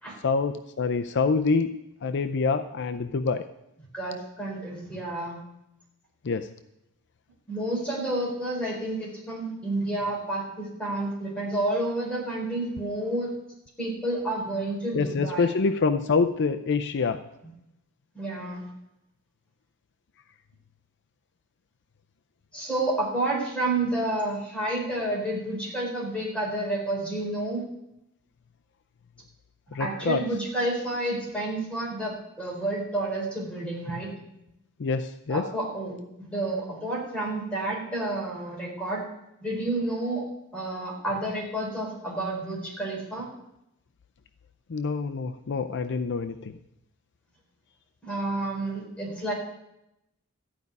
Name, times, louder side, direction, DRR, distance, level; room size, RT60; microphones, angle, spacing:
voice 1, 0.2-3.5 6.2-6.5 14.9-17.2 29.7-30.2 34.8-35.5 44.7-46.6, left 4 dB, 55° left, 8 dB, 0.5 m, -26 dB
voice 2, 3.9-5.4 7.5-13.3 13.8-15.5 18.1-18.7 22.5-27.6 29.8-34.1 35.3-39.0 39.4-40.2 40.5-43.3 48.0-49.3, right 1 dB, 5° left, -4 dB, 4.8 m, -30 dB
14.0 x 5.4 x 9.5 m, 0.86 s
head